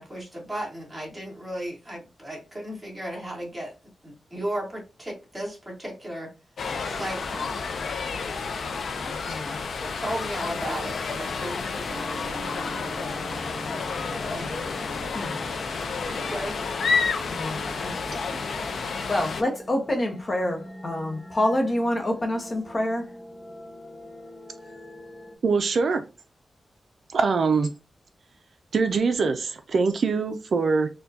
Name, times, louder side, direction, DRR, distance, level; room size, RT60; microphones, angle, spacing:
voice 1, 0.0-3.7 4.0-6.3 6.8-7.6 9.8-13.3 14.2-14.5 16.0-16.6, right 1 dB, 10° right, 1.7 m, -35 dB
sound 1, 6.6-19.4, left 5 dB, 70° left, 0.5 m, -30 dB
voice 2, 9.0-9.6 15.1-15.4 17.3-18.5 18.8-23.1, left 1 dB, 35° left, 0.7 m, -28 dB
sound 2, 11.9-25.4, left 1 dB, 15° left, 1.2 m, -42 dB
voice 3, 25.4-26.0 27.1-27.7 28.7-30.9, right 4 dB, 65° right, 0.3 m, -23 dB
4.3 x 2.2 x 2.7 m
wide cardioid pair, 125°, 0 cm